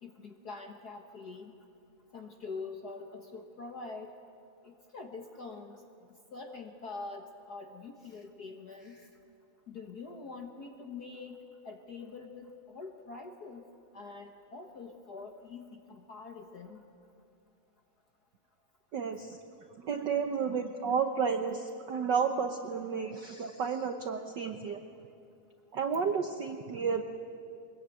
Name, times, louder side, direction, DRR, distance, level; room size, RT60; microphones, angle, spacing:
voice 1, 0.0-1.5 2.1-4.1 4.6-5.8 6.3-9.1 9.7-11.4 11.6-13.6 13.9-16.8, left 4 dB, 50° left, 4 dB, 1.2 m, -44 dB
voice 2, 18.9-19.4 19.8-24.8 25.7-27.0, right 6 dB, 80° right, 7 dB, 0.9 m, -32 dB
23.5 x 21.5 x 9.0 m, 2.5 s
omnidirectional pair, 3.3 m